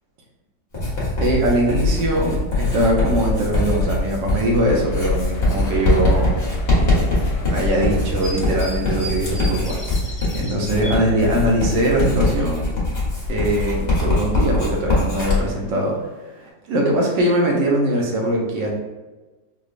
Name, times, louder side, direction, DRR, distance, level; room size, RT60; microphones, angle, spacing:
Writing, 0.7-15.4, left 2 dB, 30° left, 0.9 m, -22 dB
voice 1, 1.2-6.3 6.7-7.2 7.5-9.8 10.1-12.7 13.3-15.9 16.7-18.7, right 1 dB, 75° right, -1 dB, 1.4 m, -21 dB
sound 1, 4.6-8.6 9.3-9.5 9.9-10.0, left 3 dB, 85° left, 1.4 m, -34 dB
sound 2, 7.2-11.0 12.7-16.5, right 1 dB, 15° right, 0.8 m, -39 dB
4.8 x 2.2 x 2.4 m, 1.2 s
omnidirectional pair, 2.0 m